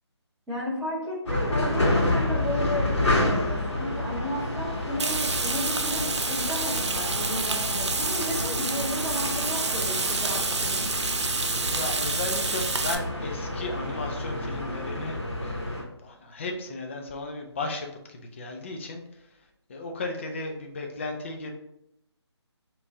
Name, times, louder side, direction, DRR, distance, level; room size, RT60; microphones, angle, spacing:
voice 1, 0.5-10.9, equal, 5° right, -10 dB, 0.8 m, -33 dB
sound 1, 1.3-15.8, left 1 dB, 80° left, 1.5 m, -29 dB
Frying (food), 5.0-12.9, right 4 dB, 75° right, 0.6 m, -29 dB
voice 2, 11.7-19.0 19.7-21.5, left 2 dB, 25° left, 2 dB, 0.5 m, -35 dB
4.9 x 2.9 x 2.7 m, 0.82 s
figure-of-eight pair, 160°, 15 cm